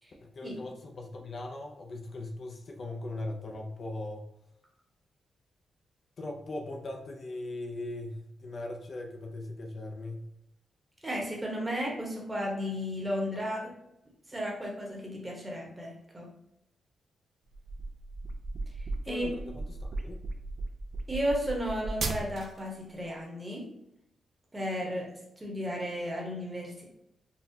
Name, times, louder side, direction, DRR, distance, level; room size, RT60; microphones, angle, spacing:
voice 1, 0.2-4.3 6.2-10.3 19.0-20.2, left 2 dB, 50° left, 2 dB, 0.5 m, -39 dB
voice 2, 11.0-13.7 14.3-16.3 19.1-19.3 21.1-23.7 24.5-26.8, equal, 15° right, -2 dB, 1.0 m, -34 dB
sound 1, 17.5-22.7, right 2 dB, 55° right, 0.4 m, -36 dB
4.0 x 2.3 x 2.7 m, 0.82 s
cardioid pair, 100°, 0 cm